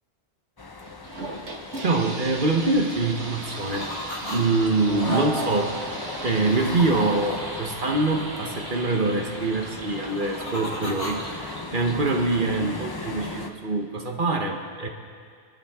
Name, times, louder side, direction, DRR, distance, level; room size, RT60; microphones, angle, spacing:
sound 1, 0.6-13.5, left 3 dB, 25° left, 0.6 m, -38 dB
sound 2, 0.8-13.3, right 1 dB, 85° right, 1.9 m, -39 dB
voice 1, 1.8-3.9 4.2-5.8 6.2-14.9, right 3 dB, 50° right, 3 dB, 1.2 m, -24 dB
sound 3, 3.2-4.4 4.6-7.1 9.8-11.6, equal, 80° left, 4.2 m, -34 dB
25.5 x 12.0 x 3.6 m, 2.2 s
omnidirectional pair, 1.2 m